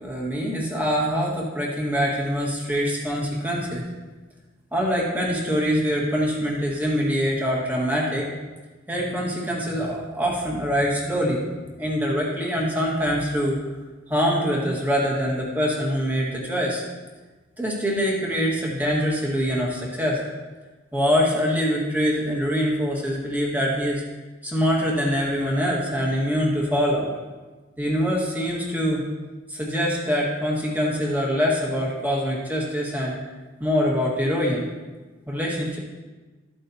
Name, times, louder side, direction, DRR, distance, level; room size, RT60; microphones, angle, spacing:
voice 1, 0.0-3.8 4.7-8.3 8.9-11.4 11.8-13.6 14.1-16.8 17.6-20.2 20.9-24.0 24.4-27.1 27.8-29.0 29.5-33.2 33.6-34.6 35.3-35.8, equal, 10° right, -3 dB, 1.8 m, -24 dB
13.0 x 8.6 x 2.9 m, 1.3 s
head